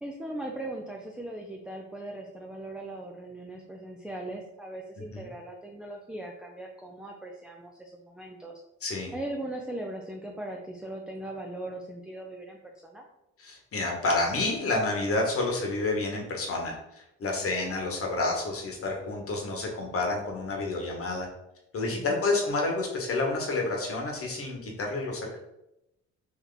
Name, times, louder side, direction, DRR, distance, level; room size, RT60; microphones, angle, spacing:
voice 1, 0.0-8.6 9.1-13.0 21.9-22.2, right 1 dB, 5° right, 1 dB, 0.4 m, -39 dB
voice 2, 8.8-9.1 13.4-21.3 21.7-25.4, left 2 dB, 50° left, 0 dB, 1.2 m, -29 dB
3.4 x 2.8 x 3.9 m, 0.86 s
cardioid pair, 90°, 30 cm